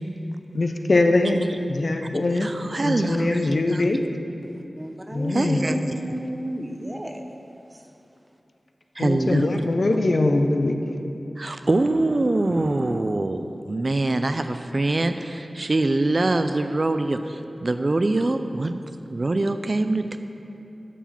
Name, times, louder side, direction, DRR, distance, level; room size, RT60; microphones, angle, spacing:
voice 1, 0.5-2.5 2.8-4.0 5.1-5.8 9.0-11.0, left 2 dB, 55° left, 5 dB, 0.6 m, -22 dB
voice 2, 2.3-3.4 3.7-3.8 5.3-5.7 9.0-9.6 11.4-18.8 19.1-20.2, right 2 dB, 45° right, 8 dB, 0.4 m, -24 dB
voice 3, 4.4-7.2 7.7-7.8, right 1 dB, 15° right, 4 dB, 0.8 m, -32 dB
12.5 x 4.9 x 5.8 m, 2.8 s
wide cardioid pair, 70°, 0 cm